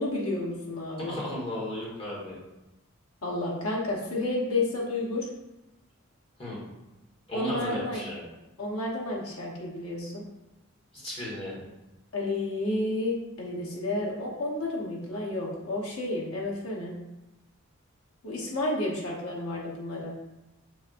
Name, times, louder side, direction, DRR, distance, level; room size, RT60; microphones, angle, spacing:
voice 1, 0.0-1.2 3.2-5.4 7.3-8.0 8.6-10.2 12.1-16.9 18.2-20.1, left 2 dB, 90° left, -3 dB, 1.0 m, -31 dB
voice 2, 1.1-2.4 6.4-6.6 7.3-8.2 10.9-11.7, left 1 dB, 25° left, -6 dB, 1.5 m, -35 dB
6.0 x 3.4 x 2.5 m, 1.0 s
head